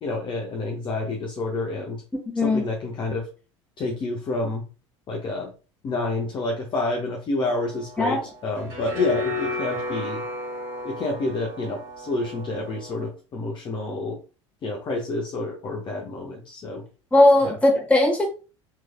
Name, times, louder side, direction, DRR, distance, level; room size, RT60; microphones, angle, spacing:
voice 1, 0.0-2.0 2.3-3.3 3.8-4.6 5.1-5.5 5.8-10.2 10.8-14.2 14.6-16.8 17.4-17.5, left 2 dB, 30° left, -1 dB, 0.7 m, -29 dB
voice 2, 2.3-2.6 8.0-8.2 17.1-18.3, left 2 dB, 10° left, -1 dB, 1.2 m, -18 dB
sound 1, 7.5-13.1, left 3 dB, 55° right, 1.7 m, -32 dB
3.3 x 3.1 x 2.2 m, 0.34 s
figure-of-eight pair, 70°, 16 cm